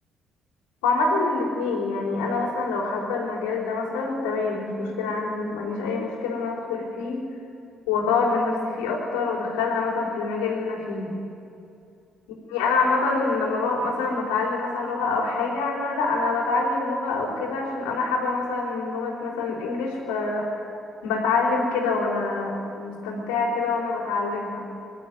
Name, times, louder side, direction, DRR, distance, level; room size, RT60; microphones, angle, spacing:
voice 1, 0.8-7.2 7.9-11.1 12.5-20.5 21.0-24.6, left 3 dB, 85° left, -1 dB, 4.5 m, -26 dB
22.5 x 13.0 x 9.4 m, 2.6 s
hypercardioid pair, 55°, 0 cm